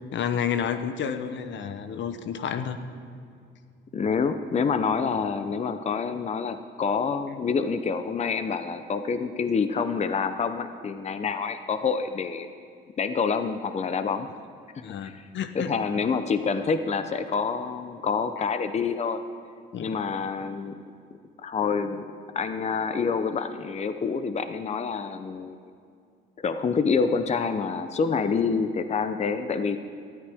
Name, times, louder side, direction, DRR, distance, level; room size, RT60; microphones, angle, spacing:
voice 1, 0.1-2.8 14.8-15.7 18.0-18.1 19.7-19.9, left 8 dB, 65° left, 9 dB, 0.8 m, -30 dB
voice 2, 3.9-12.5 13.0-14.3 15.0-15.2 15.5-19.2 19.8-20.7 21.4-25.6 26.4-29.8, left 5 dB, 35° left, 10 dB, 0.6 m, -27 dB
18.0 x 13.0 x 3.5 m, 2.3 s
cardioid pair, 90°, 20 cm